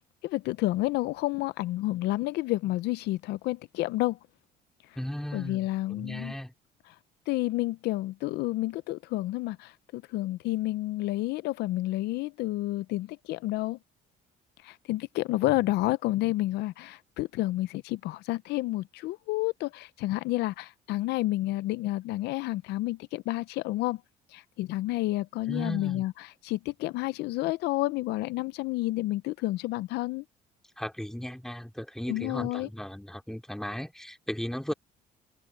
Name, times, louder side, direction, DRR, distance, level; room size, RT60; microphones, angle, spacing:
voice 1, 0.2-4.2 5.3-6.3 6.9-7.0 7.3-13.8 14.6-24.0 24.3-30.2 32.1-32.7, left 18 dB, 80° left, 0.6 m, -30 dB
voice 2, 5.0-6.5 15.5-15.6 25.5-26.0 30.8-34.7, equal, 5° left, 2.5 m, -36 dB
cardioid pair, 110°, 17 cm